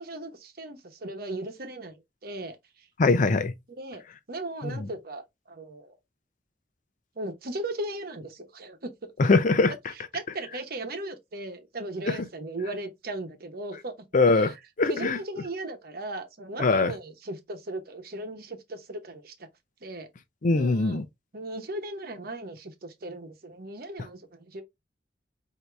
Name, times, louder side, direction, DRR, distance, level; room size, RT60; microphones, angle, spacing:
voice 1, 0.0-2.9 3.7-6.0 7.2-9.1 9.9-14.1 14.3-14.6 14.9-19.5 19.8-20.1 20.5-21.0 21.3-24.6, right 2 dB, 55° right, 1.0 m, -37 dB
voice 2, 3.0-3.5 4.6-4.9 9.2-9.7 12.1-12.2 14.1-15.2 16.6-16.9 20.4-21.0, left 3 dB, 45° left, 0.5 m, -22 dB
4.7 x 2.8 x 3.3 m
head